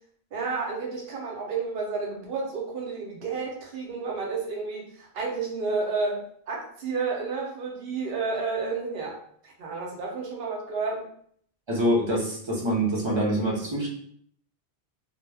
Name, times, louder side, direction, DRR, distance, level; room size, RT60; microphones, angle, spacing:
voice 1, 0.3-9.2 9.4-11.0, right 4 dB, 70° right, -1 dB, 0.9 m, -31 dB
voice 2, 11.7-13.9, right 1 dB, 35° right, -3 dB, 0.6 m, -25 dB
2.2 x 2.1 x 3.2 m, 0.63 s
omnidirectional pair, 1.1 m